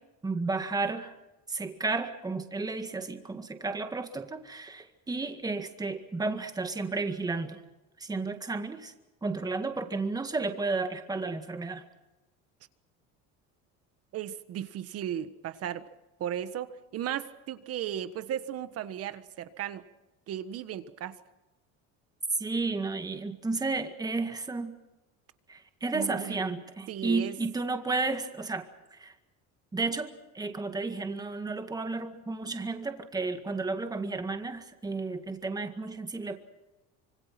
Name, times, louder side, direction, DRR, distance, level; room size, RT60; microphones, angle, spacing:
voice 1, 0.2-1.1 1.5-7.6 8.0-8.9 9.2-11.8 22.4-24.7 25.5-28.7 29.0-29.1 29.7-36.4, right 3 dB, 10° right, 7 dB, 1.9 m, -32 dB
voice 2, 14.1-15.8 16.2-19.8 20.3-21.1 25.9-26.4 26.9-27.4, right 10 dB, 45° right, 12 dB, 1.5 m, -35 dB
26.0 x 24.5 x 6.0 m, 1.0 s
cardioid pair, 145°, 33 cm